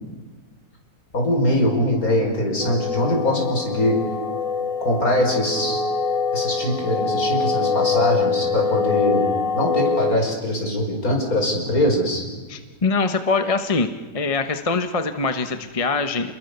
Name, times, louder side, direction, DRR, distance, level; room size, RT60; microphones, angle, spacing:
voice 1, 1.1-4.0 4.8-5.8 6.3-9.2 9.5-12.2, left 1 dB, 50° left, 1 dB, 5.8 m, -22 dB
sound 1, 2.6-10.1, left 4 dB, 80° left, 2.9 m, -24 dB
voice 2, 12.5-13.9 14.1-16.3, left 4 dB, 25° left, 8 dB, 0.9 m, -23 dB
28.5 x 21.0 x 6.8 m, 1.3 s
omnidirectional pair, 1.9 m